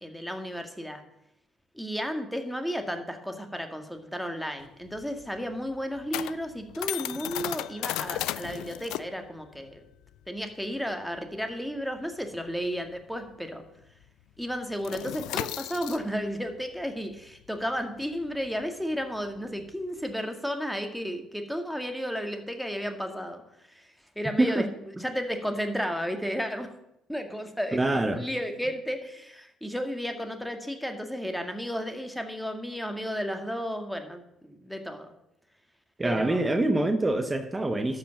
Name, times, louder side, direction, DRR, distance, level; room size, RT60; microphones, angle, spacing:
voice 1, 0.0-1.0 1.7-9.8 10.3-13.6 14.4-23.4 23.7-23.9 24.2-24.6 25.0-26.7 27.1-27.8 28.1-35.1 36.0-36.5, equal, ahead, 6 dB, 1.9 m, -33 dB
sound 1, 4.6-13.6 13.8-14.1 14.4-20.1, left 14 dB, 70° left, 0.4 m, -37 dB
voice 2, 24.4-24.7 25.0-25.1 27.7-28.3 36.0-38.0, right 2 dB, 20° right, 8 dB, 1.0 m, -25 dB
12.5 x 5.2 x 7.1 m, 0.83 s
hypercardioid pair, 55°, 0 cm